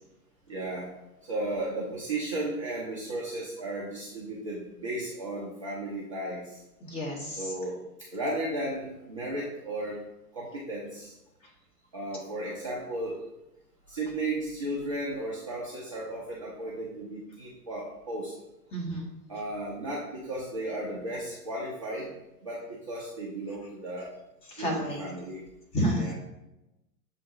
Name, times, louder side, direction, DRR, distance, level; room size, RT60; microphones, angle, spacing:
voice 1, 0.5-0.9 1.2-6.6 7.4-7.8 8.1-10.0 10.3-11.1 11.9-13.2 13.9-18.3 19.3-22.1 22.4-24.1 24.6-25.4 26.0-26.1, right 1 dB, 25° right, -5 dB, 0.3 m, -34 dB
voice 2, 6.8-7.5 18.7-19.1 24.5-25.0 25.7-26.1, equal, 15° left, -2 dB, 0.6 m, -30 dB
7.0 x 2.8 x 2.6 m, 0.93 s
figure-of-eight pair, 115°, 49 cm